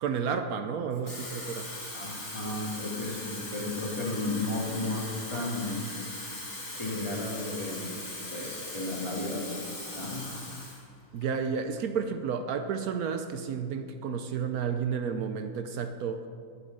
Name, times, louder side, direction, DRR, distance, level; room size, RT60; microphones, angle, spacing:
voice 1, 0.0-1.7 11.1-16.3, right 6 dB, 70° right, 7 dB, 1.1 m, -31 dB
Water tap faucet / Fill (with liquid), 0.9-10.8 11.2-11.5, left 2 dB, 45° left, 2.7 m, -40 dB
voice 2, 1.9-5.9 6.7-7.9 8.3-9.4 9.9-10.3, left 2 dB, 20° left, -3 dB, 2.2 m, -33 dB
12.5 x 9.6 x 6.5 m, 2.3 s
omnidirectional pair, 1.6 m